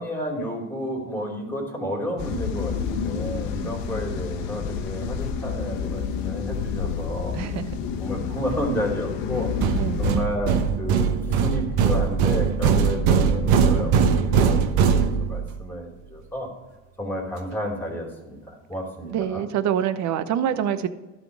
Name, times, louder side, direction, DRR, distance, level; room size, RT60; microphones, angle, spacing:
voice 1, 0.0-7.4 8.0-9.5 10.0-14.0 14.3-16.5 17.0-19.5, equal, 5° left, -1 dB, 3.2 m, -31 dB
sound 1, 2.2-10.2, left 6 dB, 65° left, 1.1 m, -29 dB
voice 2, 7.3-7.6 9.8-10.2 19.1-20.9, right 9 dB, 50° right, 12 dB, 0.8 m, -26 dB
sound 2, 9.6-15.6, right 6 dB, 75° right, 1.0 m, -21 dB
12.0 x 4.3 x 7.3 m, 1.1 s
supercardioid pair, 110°, 36 cm